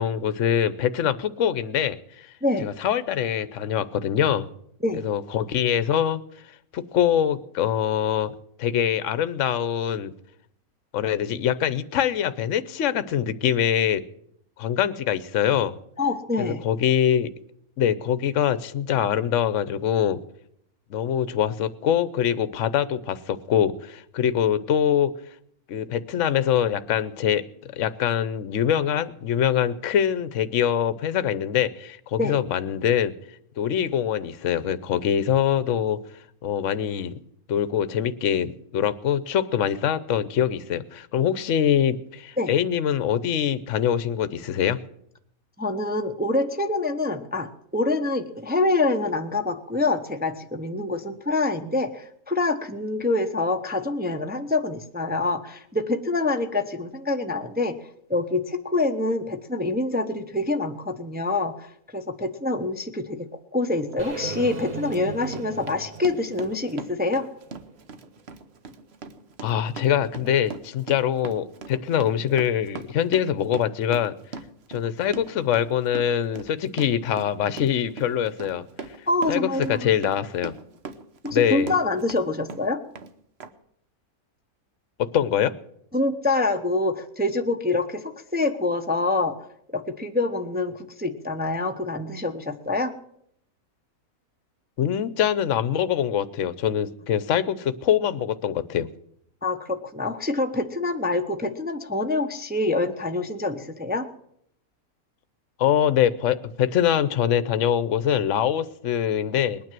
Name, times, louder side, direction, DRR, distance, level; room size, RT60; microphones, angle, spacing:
voice 1, 0.0-2.3 2.6-4.5 5.0-6.2 6.7-8.3 8.6-10.1 10.9-14.0 14.6-15.7 16.4-17.3 17.8-20.2 20.9-25.1 25.7-33.1 33.6-36.0 36.4-37.2 37.5-44.8 69.4-74.1 74.7-78.6 79.3-80.5 81.3-81.7 85.0-85.5 94.8-98.9 105.6-109.6, left 9 dB, 60° left, 14 dB, 1.1 m, -24 dB
voice 2, 16.0-16.6 32.2-32.4 42.4-42.5 45.6-57.8 58.1-63.3 63.5-67.3 79.1-79.9 81.2-82.8 85.9-89.5 89.7-93.0 99.4-104.1, left 2 dB, 10° right, 6 dB, 0.7 m, -26 dB
Run, 63.9-64.0 64.5-82.2 82.5-83.1 83.4-83.5, right 4 dB, 50° right, 1.1 m, -39 dB
sound 1, 64.0-68.0, right 4 dB, 35° right, 0.9 m, -37 dB
20.5 x 9.4 x 7.5 m, 0.71 s
omnidirectional pair, 1.6 m